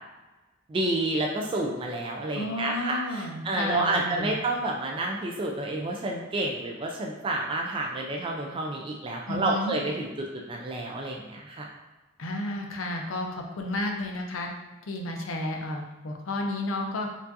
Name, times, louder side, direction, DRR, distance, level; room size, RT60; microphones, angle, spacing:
voice 1, 0.7-11.7, right 2 dB, 25° right, -1 dB, 0.3 m, -29 dB
voice 2, 2.3-4.4 9.3-9.7 12.2-14.5 14.9-17.1, left 2 dB, 80° left, 2 dB, 0.6 m, -32 dB
4.5 x 2.5 x 2.6 m, 1.1 s
head